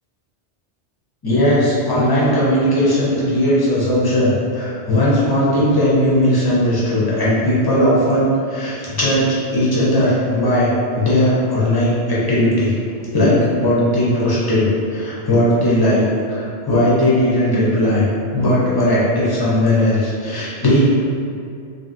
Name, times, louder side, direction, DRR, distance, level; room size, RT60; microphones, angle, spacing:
voice 1, 1.2-12.7 13.1-18.1 18.3-20.8, left 1 dB, 30° left, -8 dB, 0.5 m, -17 dB
2.8 x 2.6 x 2.5 m, 2.4 s
omnidirectional pair, 1.2 m